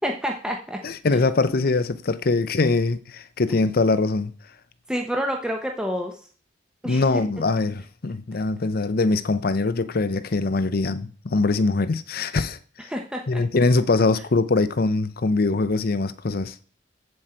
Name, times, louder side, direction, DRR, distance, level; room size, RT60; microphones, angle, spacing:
voice 1, 0.0-0.8 4.9-6.2 6.8-7.0 12.9-13.4, equal, 5° right, 0.9 m, -28 dB
voice 2, 0.8-4.3 6.8-12.6 13.3-16.5, left 3 dB, 55° left, 0.7 m, -22 dB
8.0 x 7.6 x 4.4 m
head